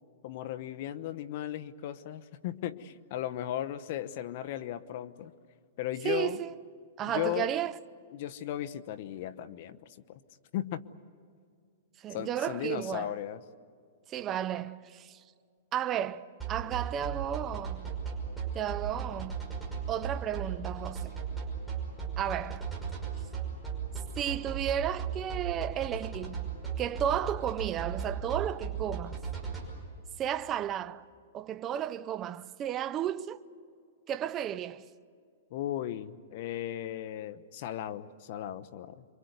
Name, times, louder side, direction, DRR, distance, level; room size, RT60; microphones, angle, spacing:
voice 1, 0.2-5.3 5.8-6.4 7.1-7.5 8.1-9.8 10.1-10.2 10.5-10.8 12.1-13.4 35.5-39.0, left 12 dB, 50° left, 1.0 m, -36 dB
voice 2, 6.0-6.6 7.0-7.7 12.0-13.1 14.1-15.2 15.7-17.9 18.5-19.4 19.9-21.1 22.2-22.7 24.2-26.5 26.8-29.2 30.2-31.0 31.3-33.4 34.1-34.9, right 10 dB, 25° right, 0.6 m, -33 dB
sound 1, 16.4-29.6, right 7 dB, 5° right, 5.6 m, -36 dB
27.0 x 24.5 x 8.2 m
hypercardioid pair, 150°, 0 cm